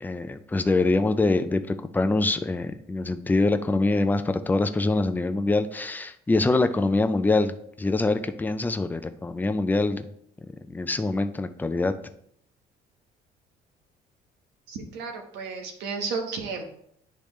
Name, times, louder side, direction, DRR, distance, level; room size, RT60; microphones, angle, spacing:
voice 1, 0.0-10.0 10.7-11.9, left 2 dB, 10° left, 9 dB, 0.4 m, -24 dB
voice 2, 14.7-16.6, right 4 dB, 90° right, 3 dB, 1.3 m, -33 dB
10.0 x 3.4 x 3.2 m, 0.70 s
cardioid pair, 110°, 17 cm